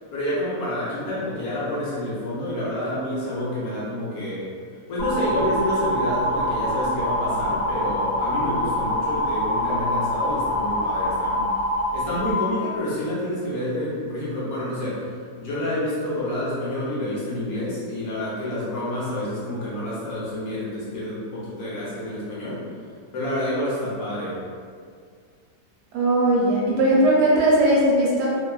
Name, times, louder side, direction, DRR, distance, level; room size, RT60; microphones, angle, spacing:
voice 1, 0.0-4.5 4.9-11.5 11.9-22.6 23.1-24.4, left 1 dB, 65° left, -8 dB, 1.1 m, -28 dB
sound 1, 5.0-12.3, equal, 50° left, 0.9 m, -25 dB
voice 2, 25.9-28.3, right 1 dB, 70° right, -5 dB, 1.1 m, -18 dB
2.9 x 2.3 x 2.3 m, 2.1 s
omnidirectional pair, 1.9 m